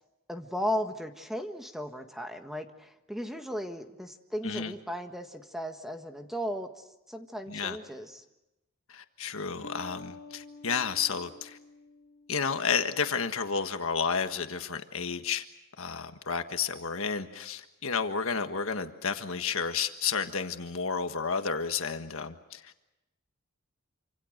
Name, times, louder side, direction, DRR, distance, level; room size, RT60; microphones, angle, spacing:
voice 1, 0.3-8.2, equal, ahead, 1.6 m, -36 dB
voice 2, 8.9-11.6 12.3-15.4 15.8-22.9, left 6 dB, 65° left, 1.6 m, -31 dB
Bass guitar, 9.6-13.2, left 3 dB, 50° left, 2.4 m, -49 dB
27.5 x 26.0 x 6.6 m
head